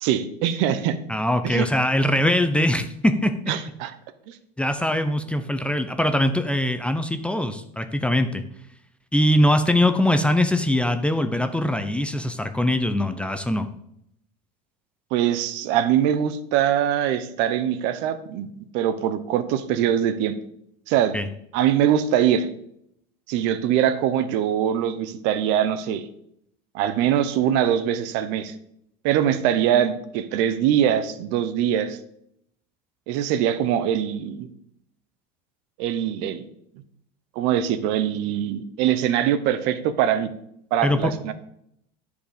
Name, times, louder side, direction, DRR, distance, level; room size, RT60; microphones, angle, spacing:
voice 1, 0.0-1.0 1.4-1.7 3.5-3.9 4.3-4.4 15.1-20.4 20.9-21.1 21.5-22.5 23.3-26.1 26.7-28.5 29.0-32.0 33.1-34.5 35.8-36.5 37.4-40.3 40.7-41.3, right 10 dB, 65° right, 12 dB, 0.9 m, -22 dB
voice 2, 1.1-3.3 4.6-8.4 9.1-13.7 21.1-21.3 40.8-41.1, left 1 dB, 5° left, 8 dB, 0.6 m, -22 dB
11.5 x 5.0 x 5.1 m, 0.73 s
supercardioid pair, 135°, 21 cm